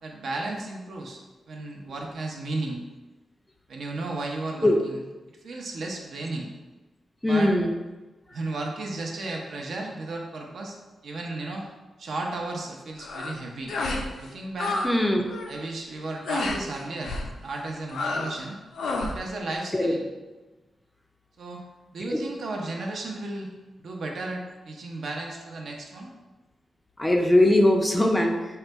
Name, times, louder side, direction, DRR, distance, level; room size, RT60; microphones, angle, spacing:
voice 1, 0.0-1.2 1.5-2.8 3.7-5.0 5.4-6.5 7.3-7.5 8.3-10.8 11.0-11.7 12.0-13.7 14.2-14.8 15.5-18.6 19.1-20.0 21.4-21.6 21.9-23.5 23.8-26.1, right 2 dB, 65° right, 0 dB, 0.6 m, -34 dB
voice 2, 7.2-7.7 14.8-15.3 19.7-19.9 22.1-22.2 27.0-28.4, left 1 dB, 10° left, 3 dB, 0.4 m, -20 dB
sound 1, 13.0-13.4 13.7-14.1 14.3-14.9 15.2-15.5 16.3-16.6 17.0-17.3 17.9-18.4 18.7-19.2, left 2 dB, 85° left, 0.5 m, -29 dB
3.8 x 2.2 x 4.4 m, 1.2 s
wide cardioid pair, 120°, 0 cm